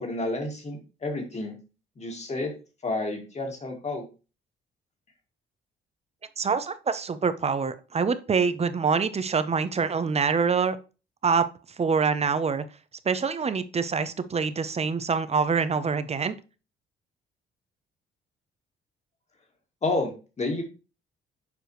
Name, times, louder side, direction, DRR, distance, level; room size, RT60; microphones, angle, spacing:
voice 1, 0.0-1.6 2.0-2.5 2.8-4.1 19.8-20.6, left 2 dB, 35° left, 3 dB, 2.0 m, -30 dB
voice 2, 6.4-10.8 11.2-11.5 11.8-12.6 13.0-16.3, right 5 dB, 30° right, 12 dB, 0.7 m, -25 dB
7.1 x 4.8 x 3.1 m, 0.32 s
cardioid pair, 90°, 20 cm